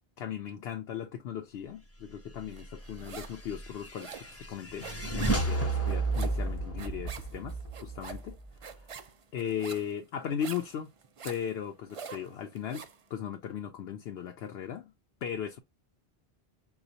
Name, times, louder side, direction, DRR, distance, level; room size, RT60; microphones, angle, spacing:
voice 1, 0.2-8.4 9.3-10.9 11.2-12.8 13.1-14.9 15.2-15.6, left 8 dB, 85° left, 0.9 m, -37 dB
sound 1, 2.6-3.4 3.7-13.0, right 6 dB, 50° right, 0.4 m, -46 dB
sound 2, 3.2-8.8, right 2 dB, 20° left, 0.6 m, -32 dB
5.8 x 2.4 x 2.7 m
omnidirectional pair, 1.0 m